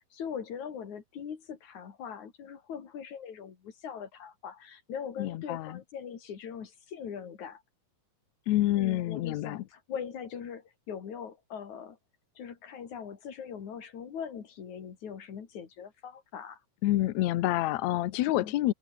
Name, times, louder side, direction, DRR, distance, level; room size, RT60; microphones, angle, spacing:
voice 1, 0.1-7.6 8.7-12.0 12.4-16.6 18.4-18.6, left 7 dB, 55° left, 4.0 m, -41 dB
voice 2, 5.2-5.8 8.5-9.6 16.8-18.7, left 15 dB, 75° left, 1.8 m, -28 dB
omnidirectional pair, 4.1 m